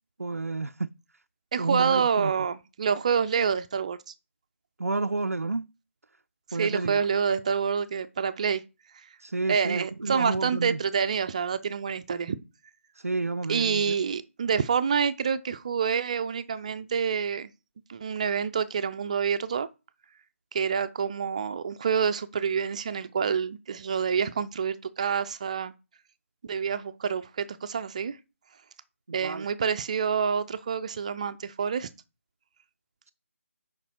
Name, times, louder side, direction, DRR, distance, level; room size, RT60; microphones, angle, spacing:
voice 1, 0.2-0.9 1.6-2.3 4.8-5.7 6.5-7.0 9.2-10.8 13.0-13.9 29.1-29.5, right 3 dB, 85° right, 0.4 m, -30 dB
voice 2, 1.5-4.1 6.6-8.6 9.5-12.4 13.5-17.5 17.9-19.7 20.5-25.7 26.4-28.2 29.1-31.9, right 6 dB, 30° right, 0.5 m, -27 dB
6.9 x 5.2 x 4.5 m
figure-of-eight pair, 155°, 8 cm